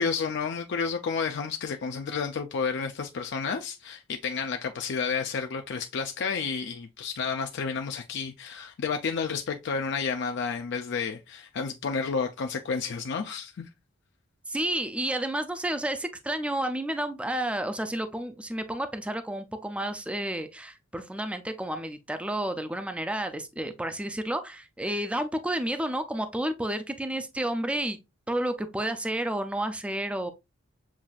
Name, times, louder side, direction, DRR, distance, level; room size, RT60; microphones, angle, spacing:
voice 1, 0.0-13.7, left 5 dB, 60° left, 0.4 m, -31 dB
voice 2, 14.5-28.0 28.3-30.3, right 1 dB, 5° right, 0.4 m, -31 dB
7.2 x 2.5 x 2.3 m
head